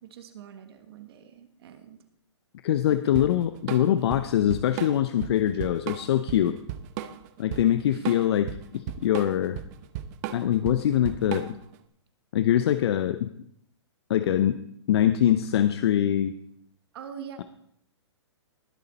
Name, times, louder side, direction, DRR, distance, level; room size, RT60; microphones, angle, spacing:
voice 1, 0.0-2.0 3.0-3.3 7.9-8.2 16.9-17.4, right 8 dB, 55° right, 8 dB, 1.7 m, -44 dB
voice 2, 2.6-6.6 7.4-8.5 8.7-9.6 10.3-11.6 12.3-13.3 14.1-14.6 14.9-16.3, left 11 dB, 60° left, 11 dB, 0.7 m, -23 dB
Drum kit / Drum, 3.2-11.8, right 11 dB, 35° right, 0.8 m, -35 dB
20.0 x 6.7 x 4.2 m, 0.69 s
hypercardioid pair, 145°, 15 cm